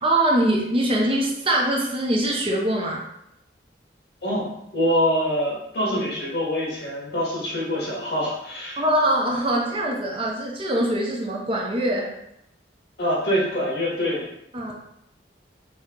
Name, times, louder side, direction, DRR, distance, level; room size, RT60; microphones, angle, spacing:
voice 1, 0.0-3.0 8.8-12.1 14.5-14.7, right 1 dB, 30° right, -1 dB, 0.6 m, -23 dB
voice 2, 4.2-8.8 13.0-14.2, equal, 60° left, -5 dB, 1.7 m, -25 dB
4.4 x 2.9 x 3.8 m, 0.79 s
head